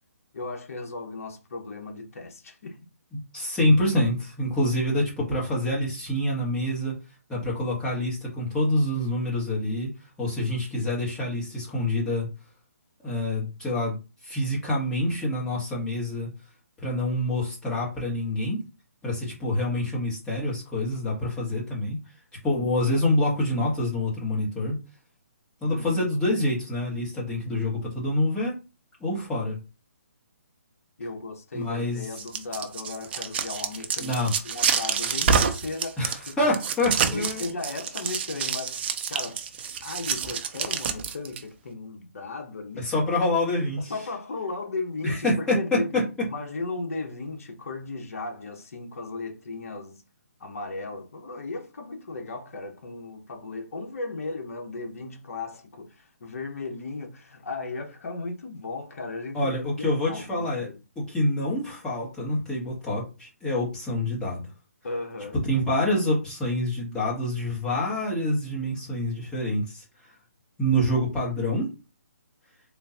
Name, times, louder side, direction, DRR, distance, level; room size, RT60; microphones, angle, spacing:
voice 1, 0.3-2.8 25.7-26.0 31.0-36.6 37.1-39.4 39.8-42.9 43.8-50.0 50.4-59.5 59.8-60.8 64.8-65.4, left 3 dB, 60° left, 1.0 m, -36 dB
voice 2, 3.1-6.9 7.3-9.9 10.2-12.3 13.0-14.0 14.2-16.3 16.8-18.6 19.0-22.0 22.4-24.8 25.6-28.5 29.0-29.6 31.5-32.0 34.0-34.3 36.0-37.5 42.8-43.9 45.0-46.0 59.3-60.7 60.9-64.5 65.5-69.8 70.6-71.7, left 1 dB, 10° left, 1.3 m, -26 dB
sound 1, 32.0-41.4, right 6 dB, 40° right, 0.5 m, -27 dB
3.6 x 2.5 x 2.8 m
figure-of-eight pair, 145°, 9 cm